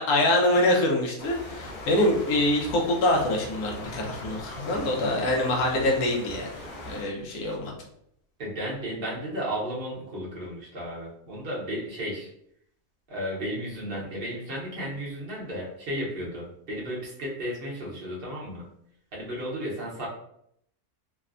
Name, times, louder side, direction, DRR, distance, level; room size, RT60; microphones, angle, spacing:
voice 1, 0.0-6.5 6.8-7.7, left 1 dB, 75° left, 0 dB, 1.1 m, -25 dB
sound 1, 1.2-7.0, left 1 dB, 55° left, 0.6 m, -40 dB
voice 2, 8.4-12.3 13.1-18.6 19.1-20.1, equal, 45° right, -4 dB, 0.8 m, -34 dB
3.2 x 2.0 x 2.4 m, 0.72 s
omnidirectional pair, 1.6 m